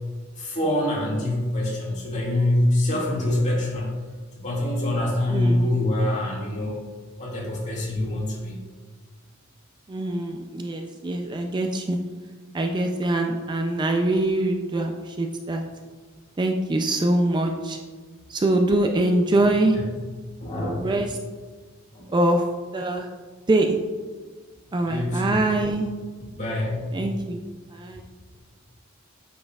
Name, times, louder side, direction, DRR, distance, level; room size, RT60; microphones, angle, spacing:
voice 1, 0.4-3.9 4.4-6.8 7.2-8.6 20.4-20.9 21.9-22.1 24.9-25.5 26.4-26.8, left 1 dB, 35° left, -5 dB, 2.0 m, -25 dB
voice 2, 5.3-5.7 9.9-12.0 12.5-15.6 16.4-17.8 18.3-19.8 20.6-21.2 22.1-22.4 22.7-23.1 23.5-23.7 24.7-25.9 26.9-27.4 27.7-28.1, right 1 dB, 20° right, 4 dB, 0.4 m, -23 dB
8.5 x 6.3 x 2.4 m, 1.5 s
head